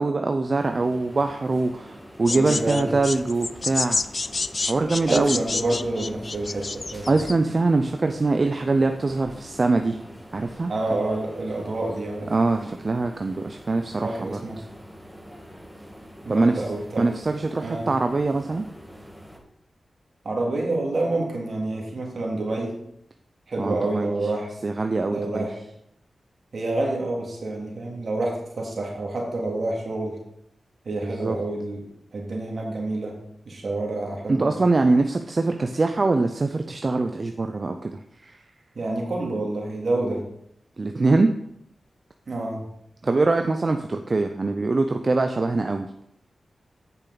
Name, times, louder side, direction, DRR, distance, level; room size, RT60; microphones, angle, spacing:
voice 1, 0.0-4.0 4.6-5.4 7.1-10.0 10.3-10.7 12.3-14.6 16.3-16.6 17.0-18.7 23.6-24.1 24.6-25.5 31.0-31.4 34.3-38.4 40.8-41.3 43.0-45.9, right 3 dB, 50° right, 6 dB, 0.6 m, -23 dB
sound 1, 0.6-19.4, equal, ahead, 1.6 m, -45 dB
sound 2, 2.3-7.3, left 3 dB, 50° left, 0.3 m, -29 dB
voice 2, 2.3-2.9 5.1-7.2 10.7-12.3 14.0-14.6 16.2-17.1 17.6-17.9 20.2-22.8 23.5-24.5 25.1-25.6 26.5-30.2 30.8-31.8 32.1-33.2 33.5-34.5 38.7-40.2 42.3-42.6, right 2 dB, 65° right, -1 dB, 2.4 m, -28 dB
8.4 x 6.9 x 4.0 m, 0.75 s
cardioid pair, 50°, 0 cm